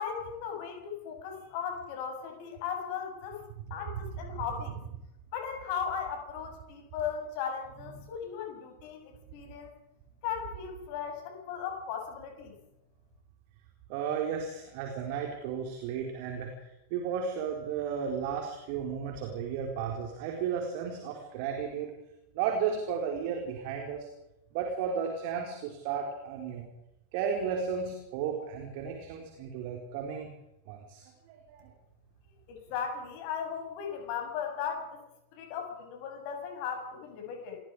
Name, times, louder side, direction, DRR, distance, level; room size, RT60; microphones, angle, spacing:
voice 1, 0.0-3.4 3.7-4.8 5.3-9.7 10.2-12.5 32.5-35.0 35.3-37.6, left 7 dB, 45° left, 3 dB, 6.9 m, -37 dB
voice 2, 4.0-4.4 7.8-7.9 13.9-21.9 22.3-24.1 24.5-26.7 27.1-30.3 30.7-31.7, right 7 dB, 45° right, 2 dB, 4.3 m, -34 dB
27.5 x 21.5 x 5.0 m, 0.87 s
figure-of-eight pair, 90°, 0 cm